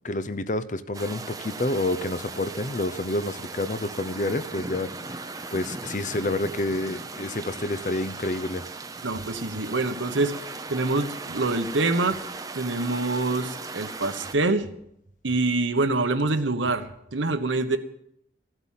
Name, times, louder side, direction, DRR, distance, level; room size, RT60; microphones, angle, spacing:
voice 1, 0.0-8.7, left 2 dB, 40° left, 13 dB, 0.7 m, -29 dB
sound 1, 0.9-14.3, right 3 dB, 20° right, 0.7 m, -38 dB
voice 2, 9.0-12.2 12.5-14.7 15.2-17.8, right 2 dB, 85° right, 9 dB, 1.2 m, -25 dB
15.5 x 8.1 x 7.4 m, 0.77 s
head